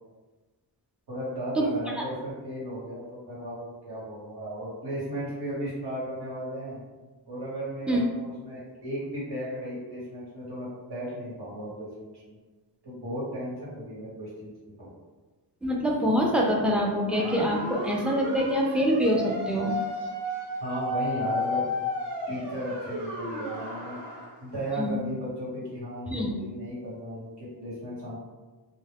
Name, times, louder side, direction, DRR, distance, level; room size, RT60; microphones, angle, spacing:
voice 1, 1.1-6.8 7.3-12.4 12.8-14.9 20.6-21.7 22.3-24.0 24.4-28.2, right 1 dB, 65° right, -7 dB, 1.3 m, -35 dB
voice 2, 15.6-19.7 24.8-25.0 26.1-26.3, equal, 5° right, -2 dB, 0.3 m, -25 dB
sound 1, 17.1-24.3, left 1 dB, 85° right, 0.7 m, -33 dB
2.2 x 2.2 x 3.4 m, 1.2 s
wide cardioid pair, 125°, 42 cm